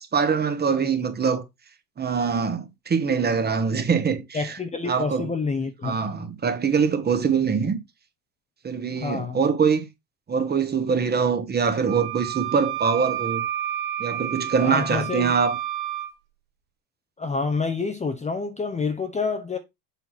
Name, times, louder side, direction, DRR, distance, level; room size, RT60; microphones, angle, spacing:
voice 1, 0.1-1.4 2.0-4.5 4.9-5.3 5.8-7.8 8.6-9.9 10.3-13.4 14.0-15.6, right 6 dB, 20° right, 1.1 m, -23 dB
voice 2, 4.3-6.0 9.0-9.4 14.6-15.3 17.2-19.6, left 4 dB, 15° left, 0.7 m, -28 dB
Wind instrument woodwind instrument, 11.8-16.1, right 12 dB, 80° right, 1.4 m, -30 dB
7.2 x 2.8 x 5.8 m
supercardioid pair, 110°, 46 cm